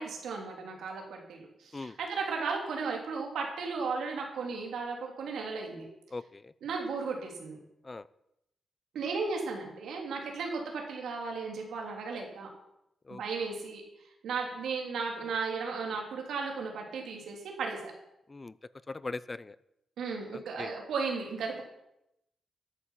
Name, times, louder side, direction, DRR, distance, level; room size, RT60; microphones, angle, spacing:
voice 1, 0.0-5.9 6.6-7.6 8.9-12.5 13.1-13.8 14.2-17.9 20.0-21.6, right 4 dB, 90° right, 1 dB, 3.4 m, -35 dB
voice 2, 6.1-6.5 7.8-8.1 13.1-13.2 18.3-18.5 18.9-19.6 20.3-20.7, left 3 dB, 25° left, 17 dB, 0.5 m, -40 dB
13.0 x 9.6 x 5.8 m, 0.83 s
cardioid pair, 90°, 0 cm